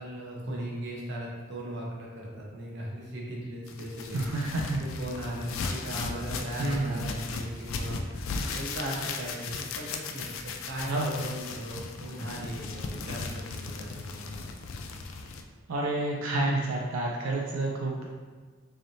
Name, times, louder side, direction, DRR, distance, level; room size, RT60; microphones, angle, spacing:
voice 1, 0.0-4.3 4.8-14.4, right 1 dB, 55° right, -3 dB, 0.8 m, -38 dB
sound 1, 3.7-15.4, left 4 dB, 70° left, 0.3 m, -37 dB
voice 2, 4.1-4.8 6.6-7.0 10.9-11.1 15.7-18.0, right 2 dB, 90° right, -1 dB, 0.4 m, -29 dB
4.0 x 3.2 x 2.6 m, 1.5 s
head